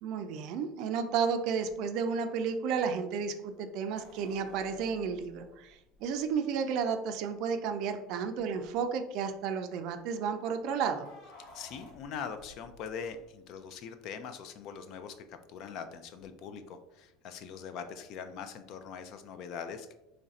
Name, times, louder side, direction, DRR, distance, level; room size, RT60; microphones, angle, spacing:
voice 1, 0.0-11.1, right 6 dB, 50° right, 7 dB, 0.4 m, -32 dB
sound 1, 1.7-1.8 4.0-6.4 7.3-7.4 7.7-7.8 8.4-8.8 10.5-13.7 16.2-16.3, left 2 dB, 80° left, 1.3 m, -56 dB
voice 2, 11.5-19.9, left 6 dB, 45° left, 9 dB, 0.3 m, -42 dB
3.2 x 2.5 x 4.0 m, 0.91 s
cardioid pair, 170°, 0 cm